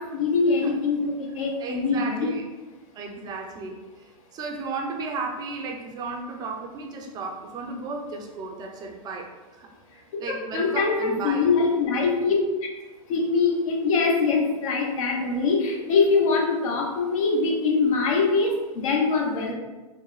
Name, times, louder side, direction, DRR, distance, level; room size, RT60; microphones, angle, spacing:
voice 1, 0.0-2.3 10.5-12.4 13.1-19.5, left 4 dB, 60° left, 0 dB, 0.9 m, -23 dB
voice 2, 1.6-2.4 2.9-9.3 9.6-9.7 10.2-11.5, right 3 dB, 20° right, 1 dB, 0.5 m, -34 dB
4.6 x 2.1 x 3.1 m, 1.2 s
hypercardioid pair, 135°, 19 cm